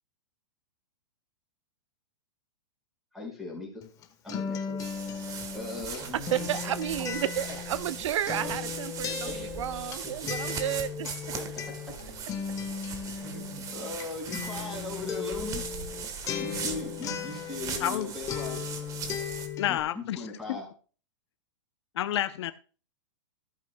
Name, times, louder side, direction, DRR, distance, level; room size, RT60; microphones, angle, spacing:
voice 1, 3.1-3.8 4.2-4.9 5.5-6.7 7.5-7.6 8.4-8.5 9.2-9.5 10.0-10.1 11.3-11.9 13.2-15.6 16.4-18.6 19.7-20.7, left 2 dB, ahead, 4.7 m, -39 dB
Acoustic guitar, 3.8-18.0 18.3-19.8, left 7 dB, 20° left, 1.1 m, -37 dB
sound 1, 4.8-19.5, right 6 dB, 20° right, 1.2 m, -39 dB
voice 2, 6.1-11.1, right 11 dB, 75° right, 0.5 m, -32 dB
voice 3, 17.8-18.1 19.6-20.6 21.9-22.5, left 12 dB, 60° left, 0.6 m, -30 dB
14.5 x 8.2 x 2.2 m
hypercardioid pair, 150°, 16 cm